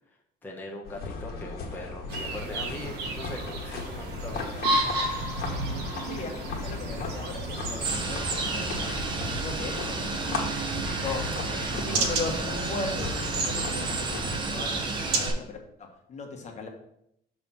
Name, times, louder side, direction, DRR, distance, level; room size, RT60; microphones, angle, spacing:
voice 1, 0.4-4.6 11.0-11.3 11.9-12.0, left 1 dB, 10° left, -2 dB, 1.0 m, -41 dB
sound 1, 0.8-14.4, left 4 dB, 70° left, 1.6 m, -37 dB
sound 2, 2.1-15.3, right 3 dB, 80° right, 1.1 m, -32 dB
voice 2, 6.0-10.4 10.9-11.2 11.8-16.7, left 3 dB, 40° left, 2 dB, 1.4 m, -38 dB
sound 3, 7.8-15.3, right 3 dB, 30° right, 0.9 m, -33 dB
6.8 x 3.5 x 5.9 m, 0.76 s
cardioid pair, 110°, 17 cm